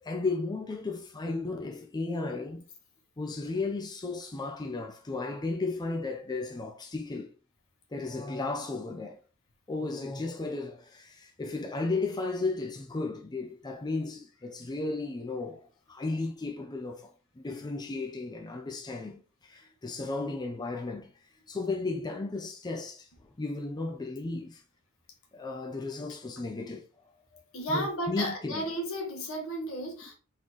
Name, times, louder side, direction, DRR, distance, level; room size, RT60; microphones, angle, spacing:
voice 1, 0.0-2.6 3.2-7.3 7.9-9.2 9.7-15.6 15.9-17.1 17.4-21.1 21.5-23.1 23.4-24.6 25.3-26.9 27.7-28.7, left 3 dB, 20° left, 0.5 m, -34 dB
voice 2, 27.5-30.1, equal, 70° left, 1.5 m, -33 dB
3.9 x 3.9 x 3.1 m
head